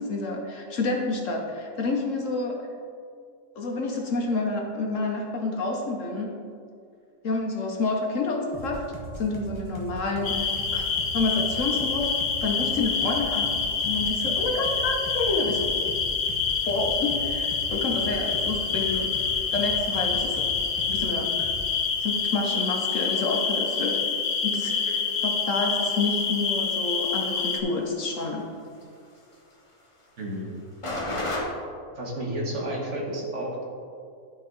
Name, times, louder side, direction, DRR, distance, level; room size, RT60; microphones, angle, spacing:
voice 1, 0.0-2.7 3.6-6.3 7.2-8.9 9.2-10.9 11.1-12.1 12.4-13.5 13.8-15.8 16.6-19.1 19.5-20.5 20.9-21.3 22.0-24.0 24.4-24.8 25.2-28.5, left 3 dB, 60° left, 1 dB, 1.1 m, -28 dB
sound 1, 8.5-21.1 21.4-21.6, right 1 dB, 20° right, 1.2 m, -39 dB
sound 2, 10.2-27.6, left 5 dB, 85° left, 1.4 m, -27 dB
sound 3, 16.2-31.4, left 2 dB, 25° left, 0.9 m, -42 dB
voice 2, 30.2-30.5 32.0-33.6, right 1 dB, 50° right, -2 dB, 1.4 m, -31 dB
11.5 x 4.6 x 3.8 m, 2.4 s
omnidirectional pair, 1.7 m